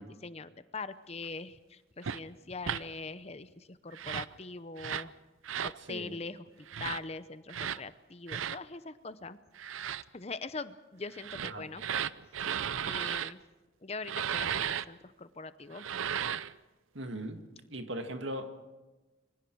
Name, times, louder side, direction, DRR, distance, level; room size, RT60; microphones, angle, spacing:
voice 1, 0.0-5.1 5.6-9.4 10.1-11.8 12.6-13.4 13.8-15.9, left 3 dB, 30° left, 13 dB, 0.7 m, -42 dB
sound 1, 2.0-2.2 2.6-2.8 3.9-4.3 4.8-5.1 5.4-5.8 6.7-7.0 7.5-7.8 8.3-8.6 9.6-10.0 11.1-13.3 14.0-14.8 15.7-16.5, right 8 dB, 90° right, 0.6 m, -34 dB
voice 2, 5.8-6.1 11.4-11.7 16.9-17.4 17.7-18.5, right 1 dB, 70° right, 6 dB, 1.9 m, -39 dB
26.0 x 23.5 x 4.7 m, 1.1 s
head